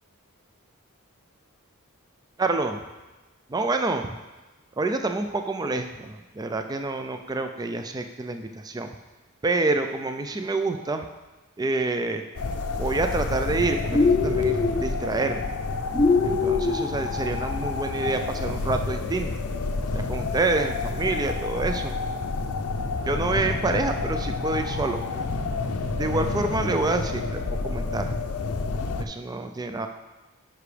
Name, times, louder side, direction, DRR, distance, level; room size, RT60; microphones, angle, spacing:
voice 1, 2.4-2.8 3.5-4.2 4.8-8.9 9.4-11.1 11.6-12.2 12.8-15.5 16.2-19.3 19.9-22.0 23.1-25.2 25.9-28.1 29.0-29.9, right 3 dB, 15° right, 7 dB, 0.3 m, -27 dB
sound 1, 12.4-29.1, left 3 dB, 75° left, 0.5 m, -29 dB
sound 2, 13.9-14.8 15.9-16.8, left 4 dB, 15° left, 0.7 m, -21 dB
9.7 x 5.9 x 3.3 m, 1.1 s
head